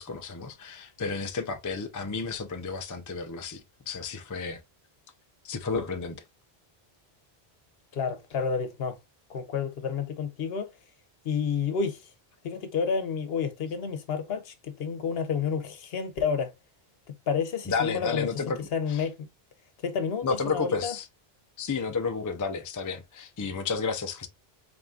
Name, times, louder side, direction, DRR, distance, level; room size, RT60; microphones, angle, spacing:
voice 1, 0.0-4.6 5.4-6.2 17.7-18.6 18.9-19.0 20.2-21.0 21.6-24.3, left 4 dB, 30° left, 0.3 m, -31 dB
voice 2, 7.9-9.0 9.3-10.7 11.2-12.1 12.4-16.5 17.3-18.3 18.7-19.3 19.8-20.9, left 6 dB, 70° left, 1.0 m, -30 dB
3.9 x 3.6 x 2.4 m
omnidirectional pair, 1.0 m